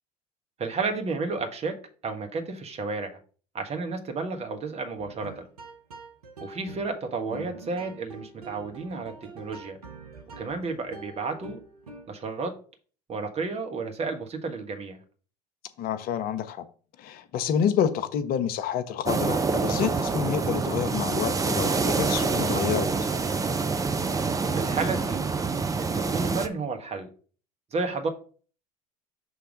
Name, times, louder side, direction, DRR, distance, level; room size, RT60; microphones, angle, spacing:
voice 1, 0.6-1.8 2.0-3.2 3.5-5.5 6.4-9.8 10.4-11.6 12.1-12.6 13.1-15.0 24.5-25.3 25.8-27.1 27.7-28.1, right 4 dB, 35° right, 1.4 m, -32 dB
sound 1, 5.0-12.3, right 3 dB, 85° right, 0.9 m, -45 dB
voice 2, 15.8-16.7 17.0-23.1, left 8 dB, 50° left, 0.8 m, -28 dB
sound 2, 19.1-26.5, right 4 dB, 20° right, 0.6 m, -26 dB
6.4 x 3.3 x 5.1 m
hypercardioid pair, 65°, 19 cm